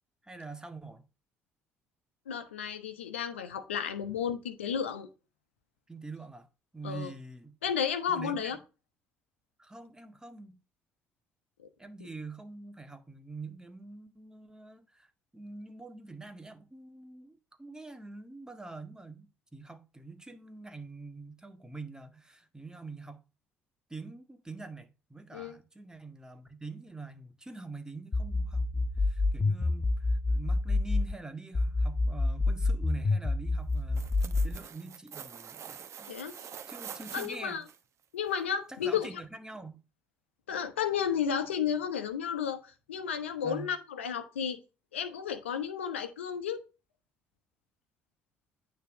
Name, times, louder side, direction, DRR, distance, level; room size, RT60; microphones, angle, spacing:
voice 1, 0.2-1.1 5.9-6.5 6.7-7.6 8.1-8.6 9.6-10.6 11.8-23.2 23.9-37.6 38.7-39.8 43.4-43.7, right 3 dB, 10° right, 1.8 m, -45 dB
voice 2, 2.3-5.1 6.8-7.1 7.6-8.6 25.3-25.6 36.1-36.3 37.1-37.6 38.1-39.1 40.5-44.6 44.9-46.6, left 8 dB, 85° left, 1.0 m, -32 dB
sound 1, 28.1-31.1 31.5-34.6, left 2 dB, 30° left, 0.8 m, -27 dB
sound 2, 33.7-37.8 38.3-38.4, right 8 dB, 50° right, 1.1 m, -45 dB
9.4 x 3.9 x 6.1 m
hypercardioid pair, 50°, 6 cm